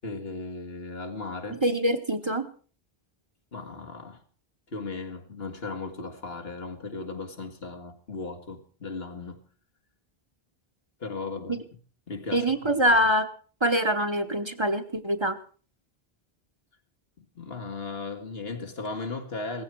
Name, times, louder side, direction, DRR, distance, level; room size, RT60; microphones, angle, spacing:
voice 1, 0.0-1.6 3.5-4.2 4.7-9.4 11.0-11.6 12.1-12.5 17.2-19.6, left 3 dB, 75° left, 2.2 m, -36 dB
voice 2, 1.6-2.5 11.5-11.6 12.3-13.3 13.6-15.4, equal, 30° right, 1.1 m, -24 dB
18.0 x 15.0 x 4.6 m
omnidirectional pair, 1.0 m